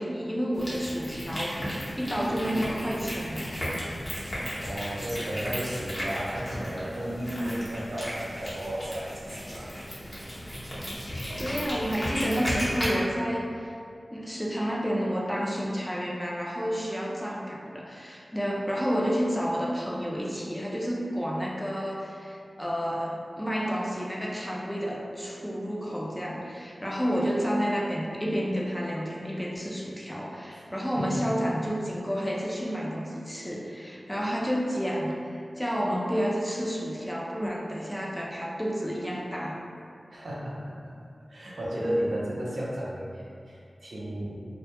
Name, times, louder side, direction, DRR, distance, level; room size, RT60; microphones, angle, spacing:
voice 1, 0.0-3.5 11.4-13.7 14.1-39.6, equal, 10° left, -3 dB, 0.3 m, -30 dB
sound 1, 0.5-12.9, equal, 40° left, 0.7 m, -35 dB
voice 2, 4.6-9.9 30.5-30.6 31.0-31.3 40.1-40.9 41.3-44.4, equal, 80° right, -6 dB, 0.5 m, -33 dB
2.1 x 2.1 x 2.8 m, 2.4 s
wide cardioid pair, 75°, 0 cm